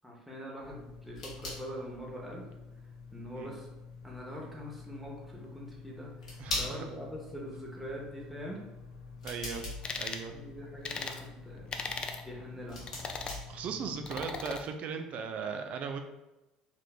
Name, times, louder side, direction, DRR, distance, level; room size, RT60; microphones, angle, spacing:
voice 1, 0.0-2.5 3.1-3.7 4.0-8.6 10.3-12.9, equal, 5° right, -3 dB, 0.9 m, -44 dB
sound 1, 0.6-14.1, left 3 dB, 70° left, 1.0 m, -44 dB
voice 2, 6.4-6.8 9.2-9.7 10.0-10.3 13.5-16.0, right 6 dB, 45° right, 6 dB, 0.4 m, -37 dB
sound 2, 9.8-10.2 10.8-11.2 11.7-12.2 12.9-13.4 14.1-14.6, left 4 dB, 30° left, 0.4 m, -37 dB
3.8 x 3.1 x 2.3 m, 1.0 s
figure-of-eight pair, 60°, 3 cm